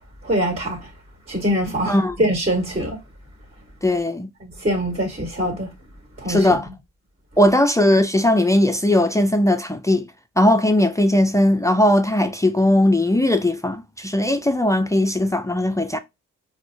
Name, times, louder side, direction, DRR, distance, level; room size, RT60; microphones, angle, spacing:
voice 1, 0.2-0.9 1.3-3.0 4.4-5.7 6.2-6.5, equal, 30° right, 1.6 m, -23 dB
voice 2, 1.9-2.2 3.8-4.3 6.3-6.7 7.4-10.1 10.4-16.0, left 1 dB, 10° left, 0.3 m, -18 dB
4.5 x 2.0 x 2.6 m
cardioid pair, 90°, 30 cm